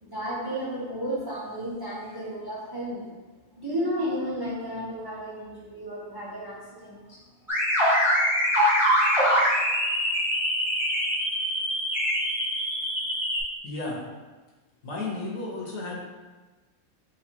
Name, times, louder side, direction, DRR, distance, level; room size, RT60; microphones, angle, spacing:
voice 1, 0.0-3.1 3.6-7.2, equal, 25° right, -6 dB, 0.6 m, -33 dB
sound 1, 7.5-13.4, equal, ahead, 1.3 m, -24 dB
voice 2, 13.6-14.0 14.8-16.0, left 2 dB, 75° left, -2 dB, 1.4 m, -33 dB
3.3 x 3.2 x 4.4 m, 1.3 s
omnidirectional pair, 1.4 m